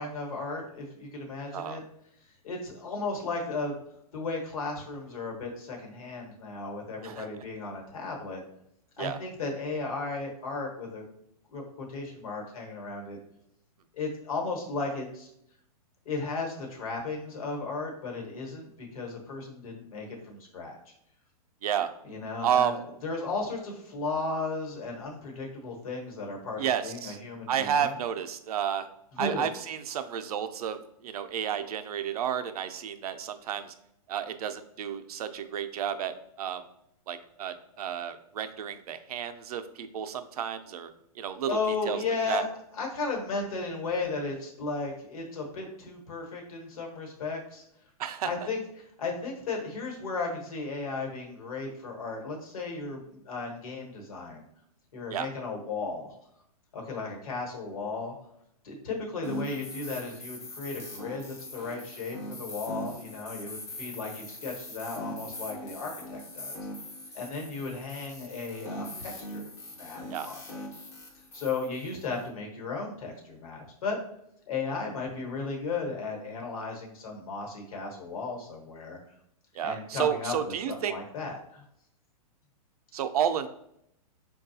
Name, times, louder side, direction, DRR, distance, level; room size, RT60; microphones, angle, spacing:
voice 1, 0.0-1.8 2.4-3.8 4.1-8.4 9.0-11.1 11.5-13.2 13.9-15.3 16.0-20.8 22.0-27.9 29.1-29.5 41.5-42.5 42.7-47.6 48.2-48.6 49.0-54.4 54.9-56.1 56.7-58.1 58.6-66.6 67.1-70.6 71.3-74.0 74.5-79.0 79.6-81.6, left 3 dB, 65° left, 1 dB, 1.1 m, -35 dB
voice 2, 21.6-21.9 22.4-22.8 26.6-27.2 27.5-28.9 29.2-33.7 34.1-36.6 37.1-40.9 41.2-41.6 41.9-42.0 42.3-42.4 48.0-48.3 55.1-55.3 70.1-70.3 79.6-80.9 82.9-83.5, right 9 dB, 70° right, 9 dB, 0.4 m, -31 dB
sound 1, 59.2-72.3, left 1 dB, 15° left, 0.4 m, -41 dB
4.6 x 2.3 x 2.7 m, 0.74 s
hypercardioid pair, 160°, 20 cm